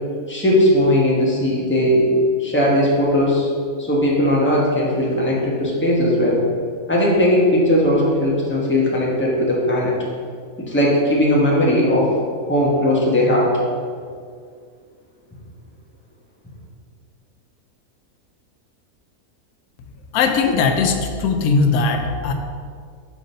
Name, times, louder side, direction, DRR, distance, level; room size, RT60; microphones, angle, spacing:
voice 1, 0.3-3.5 3.8-6.4 6.9-9.9 10.6-12.1 12.5-13.6, left 1 dB, 10° left, -5 dB, 1.1 m, -18 dB
voice 2, 20.1-22.3, left 4 dB, 90° left, 5 dB, 1.1 m, -19 dB
6.3 x 3.9 x 5.3 m, 2.1 s
omnidirectional pair, 1.5 m